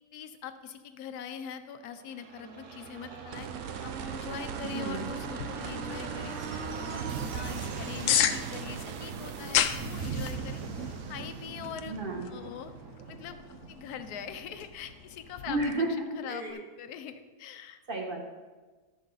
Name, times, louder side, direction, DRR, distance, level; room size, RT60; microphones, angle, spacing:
voice 1, 0.1-3.5 3.8-10.6 11.0-11.9 12.3-12.7 13.1-13.4 13.7-17.8, left 8 dB, 65° left, 10 dB, 1.1 m, -43 dB
sound 1, 2.0-15.5 15.8-15.9, right 4 dB, 50° right, 1.1 m, -40 dB
sound 2, 3.3-14.2 16.5-16.6, right 9 dB, 75° right, 0.7 m, -42 dB
voice 2, 4.6-5.1 9.4-9.6 11.9-12.3 15.5-16.5 17.9-18.2, right 2 dB, 30° right, 0 dB, 1.5 m, -33 dB
sound 3, 5.2-15.7, left 10 dB, 90° left, 0.6 m, -35 dB
12.0 x 7.2 x 3.9 m, 1.3 s
omnidirectional pair, 1.9 m